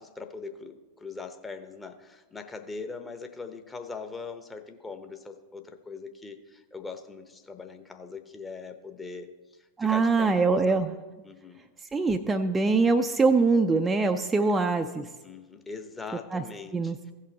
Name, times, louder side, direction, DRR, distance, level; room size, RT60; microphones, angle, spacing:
voice 1, 0.0-9.3 9.6-11.0 11.2-11.6 14.4-14.5 15.2-17.1, left 4 dB, 15° left, 7 dB, 0.8 m, -41 dB
voice 2, 9.8-10.9 11.9-15.1 16.3-16.4 16.7-17.0, right 4 dB, 15° right, 6 dB, 0.4 m, -23 dB
16.0 x 5.7 x 4.0 m, 1.2 s
figure-of-eight pair, 90°, 0 cm